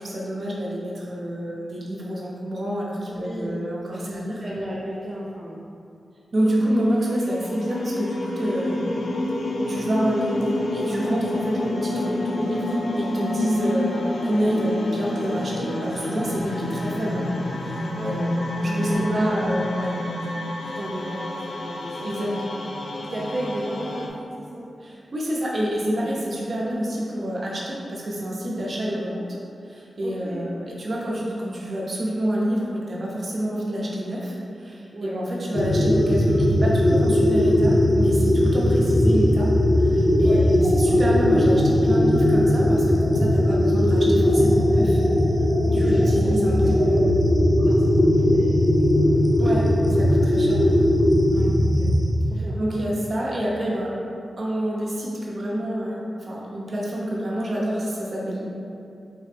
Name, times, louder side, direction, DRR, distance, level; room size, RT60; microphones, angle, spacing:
voice 1, 0.0-4.4 6.3-9.0 9.7-17.2 17.6-19.9 22.0-22.6 24.8-29.2 29.6-39.5 39.8-45.0 45.7-47.1 49.4-50.7 52.6-53.9 54.4-58.4, equal, 60° right, -4 dB, 0.8 m, -28 dB
voice 2, 3.1-3.6 3.9-5.6 13.4-13.7 16.3-16.6 18.0-18.2 18.6-20.0 20.6-22.4 23.1-24.7 30.0-30.5 34.9-35.2 38.6-38.7 40.2-40.5 45.6-46.6 47.6-49.8 51.3-52.0 52.3-52.6, right 1 dB, 35° right, -6 dB, 0.5 m, -33 dB
sound 1, 6.4-24.1, left 1 dB, 85° left, 0.4 m, -29 dB
sound 2, 35.5-52.1, left 1 dB, 45° left, 0.7 m, -19 dB
3.7 x 3.1 x 3.4 m, 2.5 s
cardioid pair, 60°, 0 cm